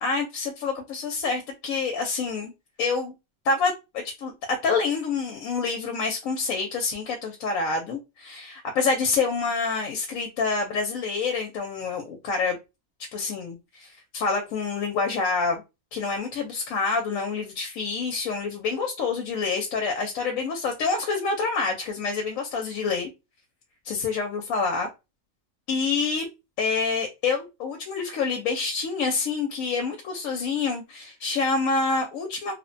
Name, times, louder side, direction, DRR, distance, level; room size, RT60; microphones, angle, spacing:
voice 1, 0.0-2.5 2.8-3.1 3.4-4.3 4.6-12.6 13.1-15.6 15.9-23.1 23.8-24.9 25.7-26.3 26.6-32.5, left 4 dB, 90° left, 1.0 m, -27 dB
2.9 x 2.1 x 2.5 m
omnidirectional pair, 1.4 m